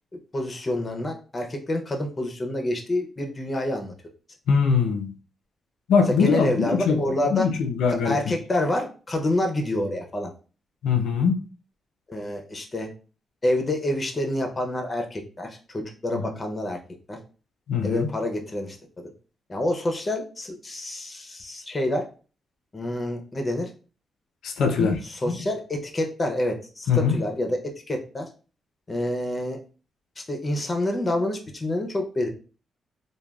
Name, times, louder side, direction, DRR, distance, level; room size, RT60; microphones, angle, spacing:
voice 1, 0.3-3.9 6.1-7.5 7.9-10.3 12.1-12.9 13.4-16.8 17.1-17.2 17.8-18.8 19.5-22.0 22.7-23.7 24.7-27.6 27.9-28.3 28.9-29.6 30.2-32.3, left 1 dB, 25° left, 0.5 m, -27 dB
voice 2, 4.5-5.1 5.9-8.3 10.8-11.4 16.1-16.3 17.7-18.1 24.4-25.0 26.9-27.2, left 5 dB, 90° left, 0.5 m, -22 dB
3.2 x 2.2 x 2.3 m
cardioid pair, 130°, 0 cm